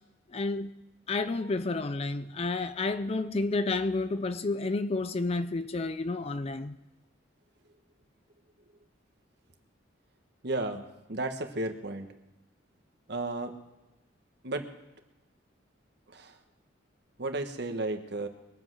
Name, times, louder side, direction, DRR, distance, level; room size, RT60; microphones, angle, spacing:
voice 1, 0.3-0.7 1.1-6.8, left 3 dB, 30° left, 0.4 m, -30 dB
voice 2, 10.4-12.1 13.1-13.5 14.4-14.7 16.1-16.4 17.2-18.3, right 2 dB, 60° right, 1.4 m, -33 dB
22.5 x 7.8 x 6.3 m
head